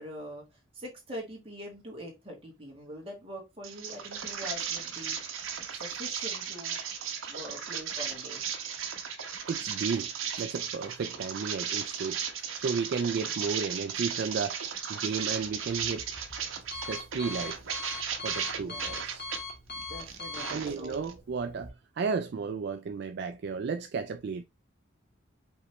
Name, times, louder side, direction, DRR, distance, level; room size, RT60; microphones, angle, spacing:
voice 1, 0.0-5.2 5.7-6.8 7.3-8.4 18.6-19.0 19.7-21.0, equal, 30° right, 2.0 m, -43 dB
sound 1, 3.6-19.4 19.8-21.1, right 7 dB, 80° right, 0.9 m, -35 dB
voice 2, 9.5-10.1 10.4-12.2 12.6-14.6 14.9-16.0 16.7-17.6 18.2-19.3 20.5-24.4, right 5 dB, 55° right, 0.3 m, -33 dB
Alarm, 15.3-21.7, left 3 dB, 55° left, 1.6 m, -42 dB
5.3 x 3.1 x 3.0 m
head